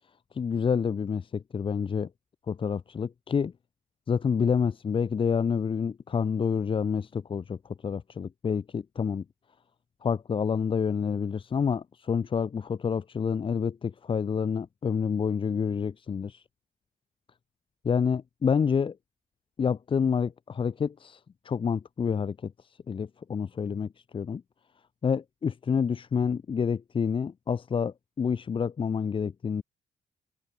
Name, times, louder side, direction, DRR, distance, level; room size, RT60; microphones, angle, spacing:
voice 1, 0.3-2.1 2.5-3.5 4.1-7.6 7.8-9.2 10.0-16.4 17.8-19.0 19.6-24.4 25.0-29.6, left 6 dB, 30° left, 0.4 m, -28 dB
supercardioid pair, 55°, 18 cm